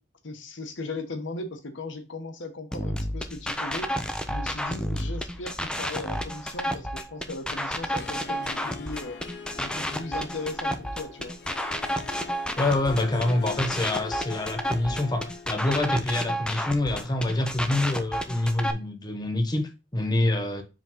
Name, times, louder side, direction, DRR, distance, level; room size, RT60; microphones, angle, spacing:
voice 1, 0.2-3.9 4.3-11.4, left 2 dB, 90° left, 1.1 m, -37 dB
sound 1, 2.7-18.7, equal, 5° left, 0.6 m, -31 dB
Harp, 7.8-15.7, left 5 dB, 65° left, 0.9 m, -42 dB
voice 2, 12.6-20.6, left 2 dB, 20° left, 1.0 m, -26 dB
5.0 x 3.8 x 5.6 m
head